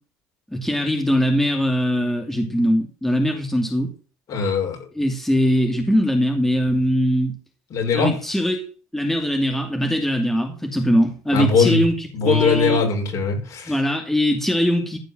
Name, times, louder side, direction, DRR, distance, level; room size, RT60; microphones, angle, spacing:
voice 1, 0.5-3.9 5.0-7.3 7.9-8.7 8.9-12.8 13.7-15.0, equal, 5° left, 2.5 m, -21 dB
voice 2, 4.3-4.8 7.7-8.1 11.3-11.8 12.1-13.8, left 4 dB, 55° left, 6.2 m, -20 dB
15.0 x 5.3 x 7.6 m
supercardioid pair, 85°, 7 cm